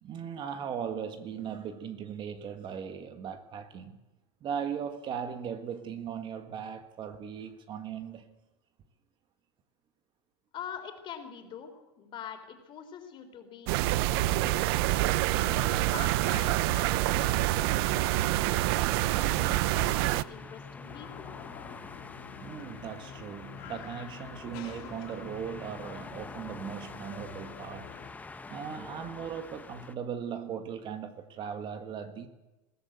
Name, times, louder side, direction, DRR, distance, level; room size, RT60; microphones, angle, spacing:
voice 1, 0.0-4.0 4.4-8.3 22.4-27.9 28.5-32.3, right 8 dB, 35° right, 1.7 m, -38 dB
voice 2, 10.5-13.7 14.1-14.8 15.3-18.4 19.0-21.3, left 8 dB, 35° left, 4.0 m, -45 dB
sound 1, 13.7-20.2, right 17 dB, 70° right, 0.7 m, -26 dB
sound 2, 13.9-29.9, left 4 dB, 10° left, 1.0 m, -47 dB
sound 3, 20.8-28.1, left 9 dB, 60° left, 2.0 m, -48 dB
21.0 x 15.0 x 8.2 m
supercardioid pair, 135°, 13 cm